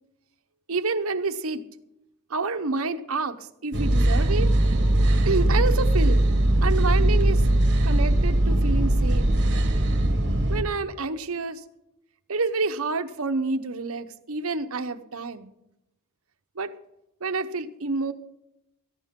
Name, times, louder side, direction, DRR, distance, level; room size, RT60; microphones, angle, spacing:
voice 1, 0.7-1.6 2.3-4.5 5.3-6.2 6.6-7.4 7.8-9.3 10.5-11.6 12.3-15.5 16.6-16.7 17.2-18.1, right 3 dB, 70° right, 9 dB, 0.9 m, -28 dB
sound 1, 3.7-10.6, right 1 dB, 55° right, 1.9 m, -20 dB
17.0 x 14.5 x 3.7 m, 0.86 s
head